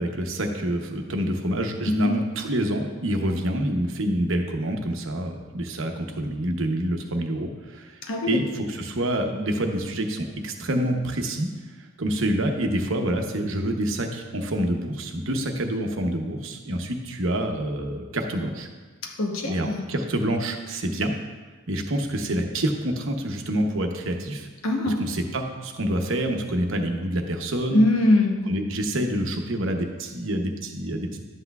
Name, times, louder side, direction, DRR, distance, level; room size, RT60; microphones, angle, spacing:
voice 1, 0.0-8.0 8.3-11.5 12.0-18.7 19.4-21.1 21.7-24.5 24.8-27.8 28.5-31.3, right 1 dB, 70° right, 4 dB, 0.9 m, -27 dB
voice 2, 8.0-8.4 19.0-19.9 24.6-25.0 27.7-28.5, left 1 dB, 85° left, 2 dB, 1.0 m, -22 dB
11.0 x 8.0 x 2.4 m, 1.4 s
head